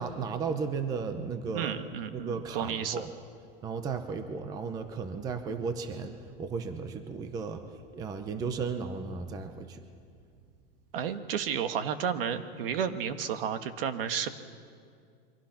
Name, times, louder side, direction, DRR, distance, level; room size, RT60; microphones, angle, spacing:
voice 1, 0.0-1.7 2.1-3.1 3.6-6.1 6.4-7.6 7.9-9.8, right 5 dB, 10° right, 8 dB, 0.7 m, -34 dB
voice 2, 1.5-2.9 10.9-14.3, right 8 dB, 65° right, 9 dB, 1.6 m, -32 dB
28.0 x 24.0 x 5.8 m, 2.2 s
supercardioid pair, 170°, 31 cm